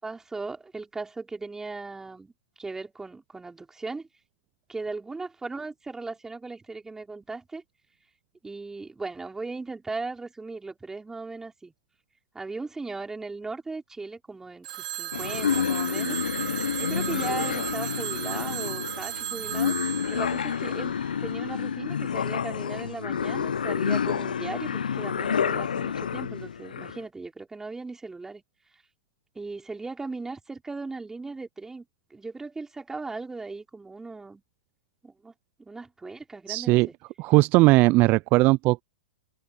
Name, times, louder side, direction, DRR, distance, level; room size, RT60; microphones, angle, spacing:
voice 1, 0.0-2.3 2.6-4.1 4.7-7.6 8.4-11.7 12.3-16.2 16.8-19.8 20.0-28.4 29.4-31.9 32.1-34.4 35.0-35.3 35.6-36.9, right 3 dB, 10° right, 5.7 m, -37 dB
Telephone, 14.6-21.5, right 14 dB, 65° right, 4.3 m, -35 dB
sound 1, 15.1-27.0, left 7 dB, 85° left, 1.1 m, -29 dB
voice 2, 36.5-36.9 37.2-38.8, right 21 dB, 40° right, 0.5 m, -19 dB
hypercardioid pair, 110°, 5 cm